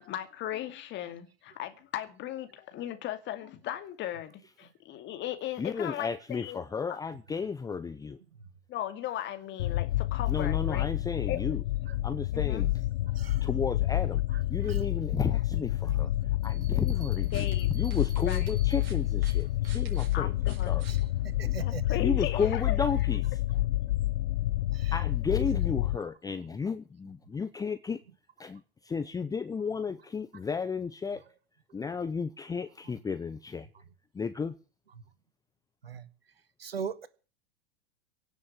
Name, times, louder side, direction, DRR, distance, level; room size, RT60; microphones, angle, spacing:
voice 1, 0.0-6.6 8.7-10.9 11.3-11.4 12.3-12.7 17.3-17.7 18.2-18.5 20.1-20.8 21.6-22.8, left 12 dB, 40° left, 2.4 m, -37 dB
voice 2, 5.6-8.2 10.3-11.6 12.0-12.7 13.4-14.2 14.5-16.1 16.4-17.5 17.7-20.9 21.4-21.5 22.0-23.4 24.9-28.0 28.4-31.2 31.7-33.7 34.1-34.6, left 5 dB, 10° left, 0.7 m, -33 dB
sound 1, 9.6-26.0, left 15 dB, 65° left, 0.6 m, -29 dB
voice 3, 13.1-13.5 14.6-14.9 15.9-16.0 16.3-16.4 20.9-22.0 24.7-24.9 25.4-25.6 35.8-36.1 36.6-37.1, right 6 dB, 85° right, 1.7 m, -40 dB
Bell, 16.4-20.1, right 6 dB, 15° right, 5.7 m, -54 dB
sound 2, 17.0-21.9, right 7 dB, 40° right, 5.2 m, -53 dB
17.5 x 7.1 x 8.9 m
hypercardioid pair, 90°, 30 cm